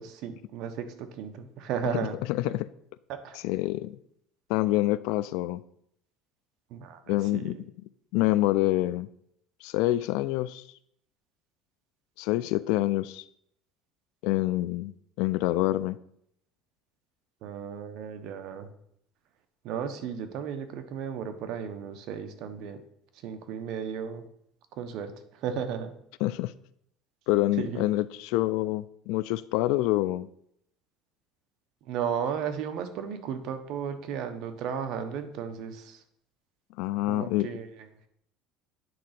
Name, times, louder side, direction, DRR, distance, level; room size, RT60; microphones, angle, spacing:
voice 1, 0.0-2.2 3.1-3.4 6.7-7.5 17.4-18.7 19.6-22.8 23.2-24.2 24.8-25.1 25.4-25.9 27.6-27.9 31.9-36.0 37.1-37.7, right 7 dB, 65° right, 1.1 m, -34 dB
voice 2, 1.9-2.7 3.4-4.0 4.5-5.6 7.1-7.6 8.1-9.1 9.6-10.6 12.2-13.2 14.2-16.0 26.2-26.5 27.3-30.3 36.8-37.5, left 17 dB, 80° left, 0.3 m, -27 dB
9.4 x 3.8 x 5.9 m
cardioid pair, 130°, 0 cm